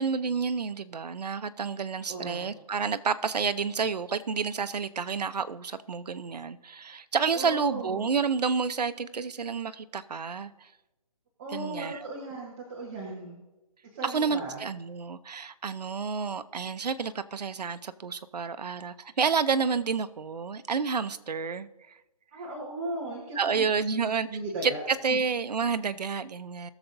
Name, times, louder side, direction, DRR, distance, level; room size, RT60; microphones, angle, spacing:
voice 1, 0.0-10.7 11.5-12.1 14.0-21.7 23.4-24.3 24.6-26.7, right 5 dB, 85° right, 13 dB, 0.7 m, -30 dB
voice 2, 2.1-2.5 7.3-8.0 11.4-13.4 13.9-14.6 22.3-24.8 25.1-25.2, right 2 dB, 20° right, -4 dB, 1.4 m, -37 dB
19.5 x 7.0 x 2.6 m, 1.0 s
hypercardioid pair, 165°, 20 cm